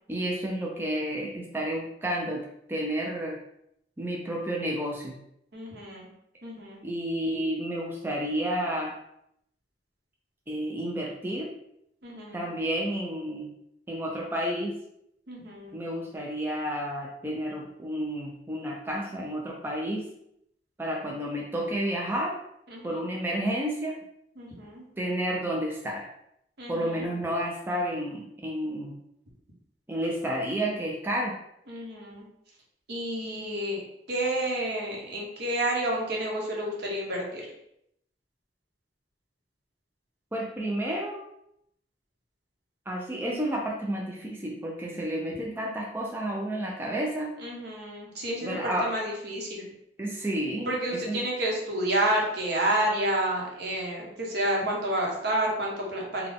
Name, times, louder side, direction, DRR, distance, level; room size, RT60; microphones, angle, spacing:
voice 1, 0.1-2.4 2.7-3.4 4.0-5.2 6.8-8.9 10.5-11.5 12.3-13.5 13.9-14.8 15.7-20.1 20.8-22.3 22.8-23.9 25.0-26.1 26.7-29.0 29.9-31.3 40.3-41.2 42.9-47.3 48.4-48.9 50.0-51.3, right 1 dB, 15° right, -2 dB, 0.5 m, -31 dB
voice 2, 5.5-6.1 6.4-6.8 12.0-12.5 15.3-15.8 22.7-23.0 24.4-24.8 26.6-27.1 31.7-32.2 32.9-33.8 34.1-37.5 47.4-49.6 50.7-56.3, right 1 dB, 65° right, -2 dB, 1.0 m, -30 dB
3.8 x 2.3 x 3.5 m, 0.76 s
head